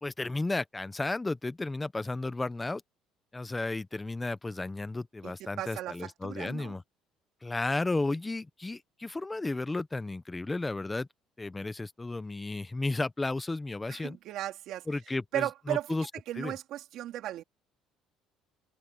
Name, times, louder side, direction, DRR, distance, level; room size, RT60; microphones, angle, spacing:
voice 1, 0.0-2.8 3.3-6.8 7.4-11.1 11.4-14.2 14.9-16.1 16.4-16.5, left 2 dB, 10° left, 0.6 m, -33 dB
voice 2, 5.2-6.7 13.9-14.9 15.3-15.9 16.3-17.4, right 13 dB, 55° right, 3.5 m, -36 dB
open air
cardioid pair, 175°, 0 cm